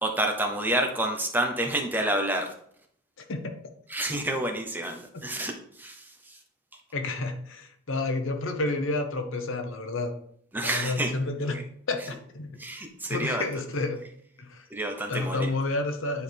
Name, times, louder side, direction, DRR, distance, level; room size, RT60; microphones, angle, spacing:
voice 1, 0.0-2.5 3.9-6.4 10.5-11.1 11.5-11.6 12.6-13.4 14.7-15.5, right 1 dB, 10° right, 3 dB, 0.7 m, -29 dB
voice 2, 3.2-3.5 5.1-5.2 6.9-10.1 10.6-11.6 11.9-12.5 13.1-14.0 14.4-14.6 15.1-16.2, left 2 dB, 65° left, 6 dB, 0.9 m, -30 dB
9.7 x 4.6 x 3.4 m, 0.65 s
head